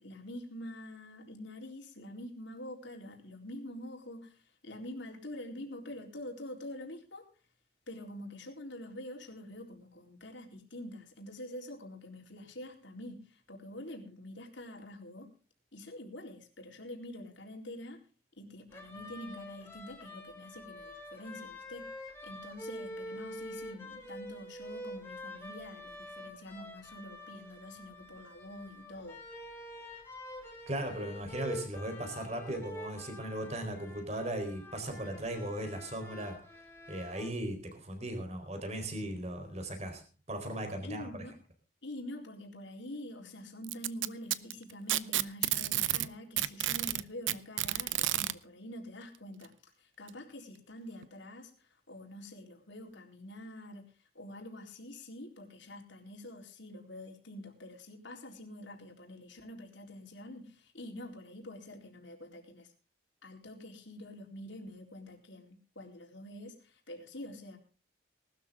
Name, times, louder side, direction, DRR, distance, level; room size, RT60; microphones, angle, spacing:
voice 1, 0.0-7.3 7.9-15.3 15.7-18.0 18.4-21.9 22.2-29.2 40.8-41.3 41.8-49.5 49.8-62.7 63.2-67.6, left 1 dB, 75° left, 2 dB, 4.1 m, -46 dB
sound 1, 18.7-37.3, left 1 dB, 15° left, 3.1 m, -47 dB
voice 2, 30.7-36.4 36.9-40.0 40.3-41.1, right 1 dB, 35° right, 5 dB, 4.3 m, -37 dB
Packing tape duct tape, 43.6-46.1 46.4-48.3 49.4-49.5 50.1-50.2 51.0-51.1, right 14 dB, 90° right, 0.8 m, -30 dB
20.0 x 12.5 x 3.8 m, 0.37 s
head